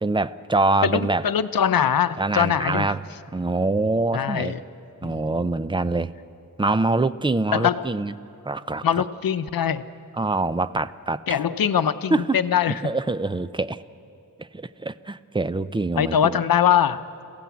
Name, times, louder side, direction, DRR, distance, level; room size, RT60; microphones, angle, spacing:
voice 1, 0.0-1.2 2.2-3.0 3.3-4.5 5.0-6.1 6.6-8.1 8.4-8.9 10.2-11.4 12.1-12.4 12.7-13.8 14.4-16.4, right 2 dB, 15° right, 14 dB, 0.5 m, -24 dB
voice 2, 0.8-2.9 4.1-4.6 5.1-5.2 7.5-7.9 8.8-9.8 11.3-12.9 16.0-17.2, left 8 dB, 80° left, 12 dB, 0.8 m, -22 dB
27.0 x 16.0 x 8.4 m, 2.6 s
wide cardioid pair, 145°, 34 cm